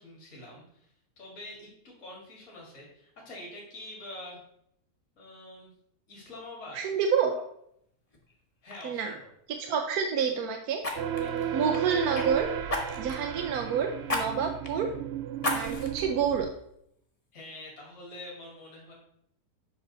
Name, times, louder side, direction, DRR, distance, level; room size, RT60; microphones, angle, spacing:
voice 1, 0.0-4.4 5.2-5.7 6.1-6.8 8.6-9.3 11.0-11.4 17.3-18.9, left 1 dB, 45° left, -3 dB, 2.2 m, -45 dB
voice 2, 6.7-7.3 8.8-9.1 9.5-10.8 11.5-12.5 13.0-14.9 15.5-16.5, right 7 dB, 70° right, 4 dB, 1.1 m, -28 dB
Fire, 8.1-8.3 8.7-8.9 10.8-12.3 12.7-13.2 14.1-14.2 14.6-14.7 15.4-16.0 16.5-16.6, left 2 dB, 25° left, 1.1 m, -33 dB
sound 1, 11.0-16.5, right 9 dB, 85° right, 0.5 m, -34 dB
8.1 x 5.8 x 4.0 m, 0.73 s
omnidirectional pair, 1.8 m